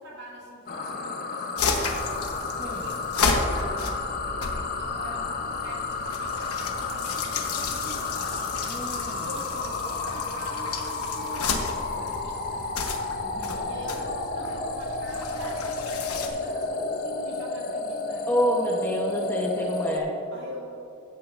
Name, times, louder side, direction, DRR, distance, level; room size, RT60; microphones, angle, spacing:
voice 1, 0.0-2.1 2.5-8.2 9.1-12.7 13.7-18.3 20.3-20.7, equal, 50° right, -3 dB, 2.1 m, -44 dB
sound 1, 0.7-20.0, left 3 dB, 40° left, 0.6 m, -32 dB
sound 2, 1.6-16.3, left 4 dB, 90° left, 1.0 m, -32 dB
voice 2, 8.7-9.2 13.2-13.7 18.3-20.1, equal, 10° left, -2 dB, 0.8 m, -28 dB
16.0 x 8.4 x 2.5 m, 2.8 s
head